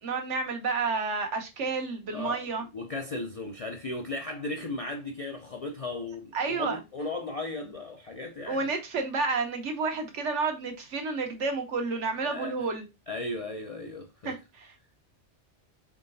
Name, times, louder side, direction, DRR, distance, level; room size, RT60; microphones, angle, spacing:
voice 1, 0.0-2.6 6.3-6.8 8.5-12.9 14.2-14.7, right 4 dB, 80° right, 1.2 m, -30 dB
voice 2, 2.1-2.5 2.7-8.7 12.2-12.6 13.1-14.3, left 2 dB, 55° left, 0.4 m, -36 dB
3.7 x 3.7 x 2.6 m
omnidirectional pair, 1.2 m